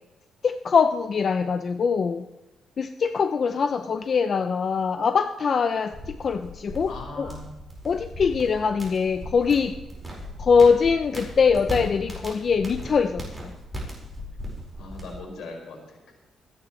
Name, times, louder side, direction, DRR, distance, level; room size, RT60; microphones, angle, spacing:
voice 1, 0.4-2.2 2.8-7.3 7.8-9.7 10.4-13.5, left 5 dB, 45° left, 9 dB, 0.5 m, -23 dB
sound 1, 5.9-15.2, equal, 5° right, 4.8 m, -37 dB
voice 2, 6.9-7.5 14.8-16.1, left 3 dB, 80° left, 0 dB, 5.2 m, -39 dB
27.0 x 9.7 x 3.2 m, 1.0 s
cardioid pair, 125°, 0 cm